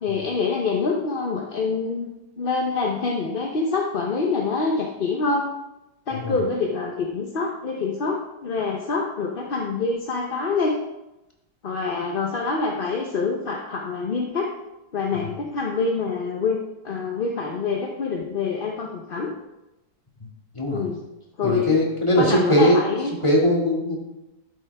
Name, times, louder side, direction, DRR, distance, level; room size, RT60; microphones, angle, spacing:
voice 1, 0.0-5.5 6.1-10.8 11.6-14.5 14.9-19.3 20.7-21.0 21.4-21.8 22.2-23.1, left 4 dB, 40° left, 0 dB, 0.8 m, -26 dB
voice 2, 21.4-22.8 23.2-24.0, equal, 20° left, -2 dB, 2.2 m, -20 dB
12.5 x 7.8 x 3.4 m, 0.96 s
omnidirectional pair, 1.8 m